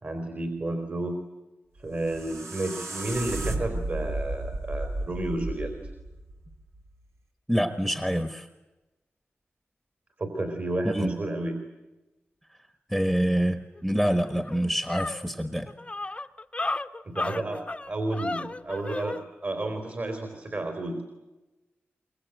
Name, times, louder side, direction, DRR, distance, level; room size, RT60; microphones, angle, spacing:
voice 1, 0.0-1.2 1.8-5.7 10.2-11.6 17.1-21.0, right 2 dB, 45° right, 5 dB, 3.8 m, -31 dB
sound 1, 1.8-6.9, right 2 dB, 85° right, 4.0 m, -34 dB
voice 2, 7.5-8.5 10.8-11.1 12.9-15.7, equal, 5° right, 8 dB, 1.3 m, -26 dB
sound 2, 13.8-13.9 14.2-19.2, left 2 dB, 25° left, 0.9 m, -33 dB
24.0 x 22.5 x 9.1 m, 1.1 s
wide cardioid pair, 90°, 4 cm